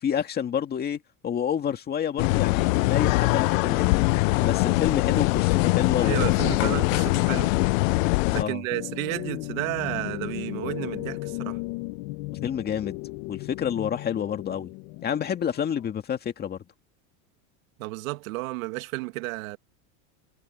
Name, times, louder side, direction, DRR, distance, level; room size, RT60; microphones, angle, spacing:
voice 1, 0.0-6.8 8.4-8.6 12.3-13.0 13.3-14.7 15.0-16.6, left 8 dB, 25° left, 1.9 m, -29 dB
sound 1, 2.2-8.4, left 23 dB, 75° left, 0.6 m, -22 dB
voice 2, 6.0-7.5 8.3-11.6 17.8-19.6, right 21 dB, 80° right, 2.0 m, -32 dB
sound 2, 8.7-15.9, left 22 dB, 60° left, 1.5 m, -36 dB
supercardioid pair, 150°, 40 cm